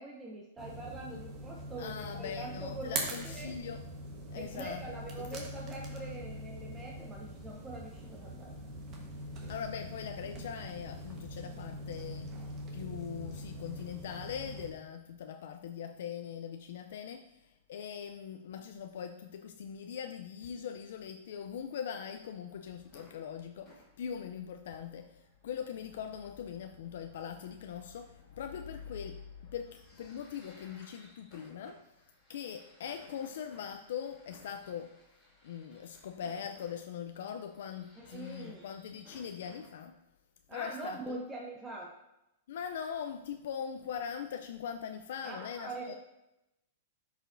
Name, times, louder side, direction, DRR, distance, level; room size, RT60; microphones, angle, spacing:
voice 1, 0.0-3.5 4.3-8.5 38.0-38.6 40.5-41.9 45.2-45.9, right 2 dB, 10° right, -1 dB, 0.6 m, -43 dB
sound 1, 0.6-14.7, right 1 dB, 30° right, 1.2 m, -43 dB
voice 2, 1.8-3.8 4.3-4.8 5.2-5.3 9.5-12.3 12.7-31.8 32.3-34.9 35.4-40.0 40.5-41.2 42.5-45.9, left 8 dB, 70° left, 7 dB, 0.4 m, -41 dB
sound 2, 22.2-39.7, left 1 dB, 15° left, 2.4 m, -62 dB
11.0 x 5.0 x 2.6 m, 0.91 s
supercardioid pair, 160°, 0 cm